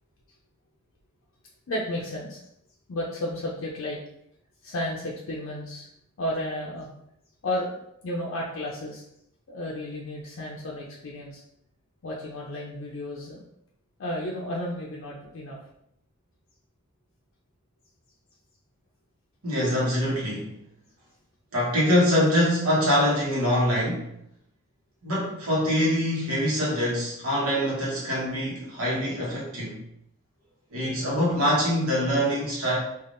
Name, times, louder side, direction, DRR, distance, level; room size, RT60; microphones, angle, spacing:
voice 1, 1.7-2.4 2.9-4.0 4.6-5.9 6.2-6.9 7.4-7.7 8.0-9.0 9.5-11.4 12.0-13.4 14.0-15.6, left 1 dB, 65° left, -3 dB, 0.5 m, -32 dB
voice 2, 19.4-20.5 21.5-24.1 25.0-29.8 30.7-32.8, equal, 85° right, -6 dB, 1.0 m, -24 dB
3.4 x 2.4 x 2.5 m, 0.76 s
head